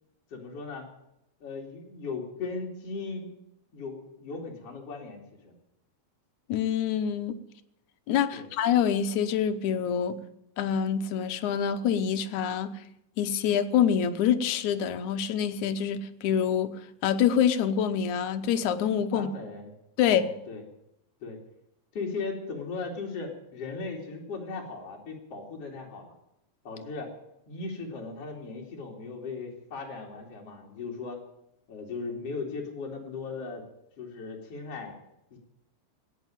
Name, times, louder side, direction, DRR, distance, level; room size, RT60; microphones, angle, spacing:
voice 1, 0.3-0.8 1.4-3.3 3.7-5.5 8.3-8.5 19.1-19.7 20.0-20.6 21.2-21.4 21.9-26.1 26.7-27.1 27.5-31.2 31.7-33.6 34.0-34.9 35.3-35.4, left 4 dB, 55° left, 0 dB, 3.7 m, -37 dB
voice 2, 6.5-7.4 8.1-10.2 10.6-12.7 13.2-16.7 17.0-19.3 20.0-20.2, left 8 dB, 80° left, 9 dB, 2.4 m, -26 dB
17.0 x 9.3 x 9.0 m, 0.83 s
omnidirectional pair, 3.4 m